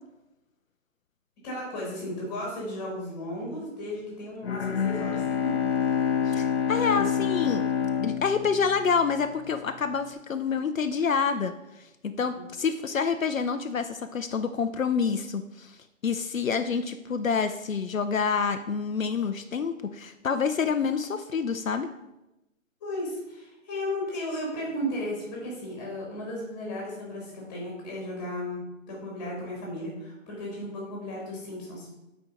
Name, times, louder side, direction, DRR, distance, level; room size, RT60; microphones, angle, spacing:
voice 1, 1.4-5.5 12.3-12.4 22.8-31.9, left 1 dB, 15° left, -3 dB, 2.0 m, -35 dB
Bowed string instrument, 4.4-9.4, left 7 dB, 50° left, 0.8 m, -27 dB
voice 2, 6.3-7.6 8.0-11.5 12.0-15.8 16.0-21.9, left 5 dB, 80° left, 8 dB, 0.7 m, -27 dB
7.8 x 4.5 x 4.9 m, 0.95 s
figure-of-eight pair, 160°, 40 cm